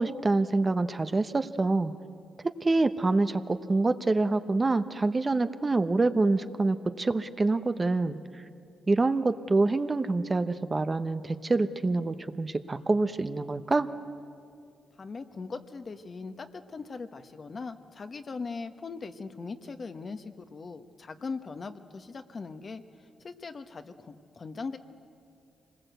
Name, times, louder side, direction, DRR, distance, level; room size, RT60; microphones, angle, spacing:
voice 1, 0.0-1.9 2.6-8.2 8.9-13.9, right 3 dB, 30° right, 10 dB, 1.0 m, -26 dB
voice 2, 15.0-22.8 23.2-24.8, left 4 dB, 45° left, 8 dB, 1.3 m, -40 dB
26.0 x 20.0 x 8.1 m, 2.4 s
cardioid pair, 60°, 0 cm